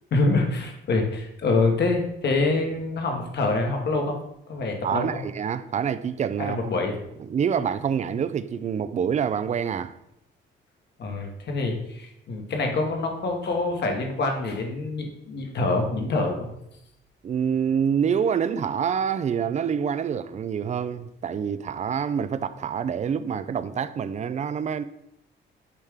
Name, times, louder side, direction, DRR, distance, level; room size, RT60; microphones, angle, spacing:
voice 1, 0.1-4.2 4.5-5.2 6.4-6.9 11.0-16.5, left 3 dB, 60° left, 1.4 m, -25 dB
voice 2, 4.8-6.6 7.2-10.0 17.2-24.8, right 7 dB, 35° right, 0.4 m, -26 dB
8.3 x 3.3 x 3.7 m
cardioid pair, 90°, 20 cm